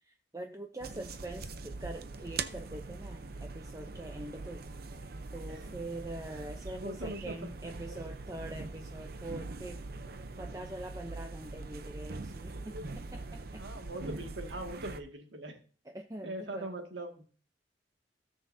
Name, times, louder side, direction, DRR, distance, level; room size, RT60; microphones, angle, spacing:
voice 1, 0.1-4.6 5.3-9.8 10.4-13.6 15.9-16.7, right 1 dB, 15° right, 4 dB, 0.6 m, -44 dB
sound 1, 0.8-15.0, right 3 dB, 55° right, 0.7 m, -42 dB
voice 2, 6.8-7.5 7.9-8.0 13.6-15.6 16.2-17.2, right 1 dB, 75° right, 3 dB, 2.0 m, -41 dB
17.0 x 6.4 x 2.7 m, 0.42 s
head